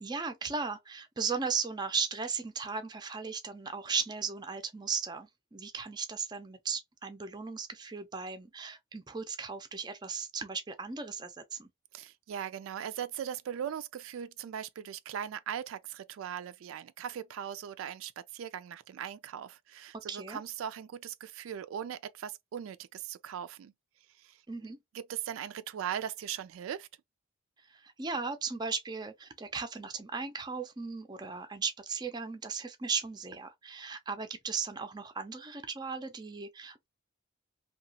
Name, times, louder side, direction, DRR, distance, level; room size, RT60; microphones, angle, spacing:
voice 1, 0.0-11.7 20.1-20.4 24.5-24.8 27.7-36.9, right 5 dB, 20° right, 0.4 m, -36 dB
voice 2, 11.9-23.7 24.2-24.4 24.9-26.9, right 9 dB, 85° right, 0.3 m, -39 dB
2.8 x 2.3 x 2.7 m
head